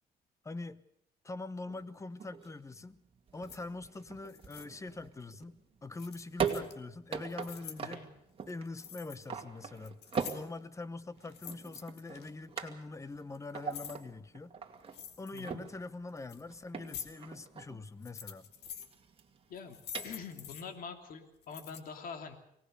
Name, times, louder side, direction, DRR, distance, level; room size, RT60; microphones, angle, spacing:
voice 1, 0.4-0.8 1.2-3.0 3.3-8.1 8.5-10.0 10.3-14.6 15.2-18.5, left 3 dB, 15° left, 15 dB, 1.0 m, -44 dB
sound 1, 1.7-20.5, right 6 dB, 35° right, 2.4 m, -42 dB
sound 2, 3.4-3.6 4.3-4.7 6.0-6.7 7.2-7.8 8.4-9.3 9.6-10.6 11.2-12.3 13.1-14.0 14.9-15.5 16.1-16.4 16.8-17.1 17.9-18.9 19.6-20.6 21.4-21.8, left 9 dB, 75° left, 2.3 m, -47 dB
voice 2, 20.0-22.4, left 5 dB, 55° left, 5 dB, 2.9 m, -45 dB
23.5 x 18.5 x 6.8 m, 0.77 s
cardioid pair, 110°, 17 cm